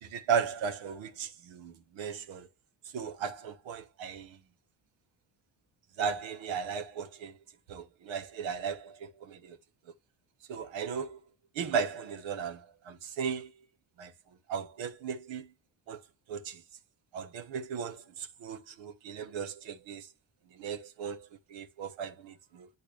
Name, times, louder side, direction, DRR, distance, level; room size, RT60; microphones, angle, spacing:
voice 1, 0.0-2.5 2.9-4.4 6.0-7.3 7.7-9.6 10.5-11.2 11.5-13.5 14.0-14.1 14.5-15.5 15.9-16.0 16.3-16.6 17.1-20.1 20.6-22.7, right 6 dB, 75° right, 1.3 m, -36 dB
8.8 x 4.1 x 3.3 m
hypercardioid pair, 55°, 47 cm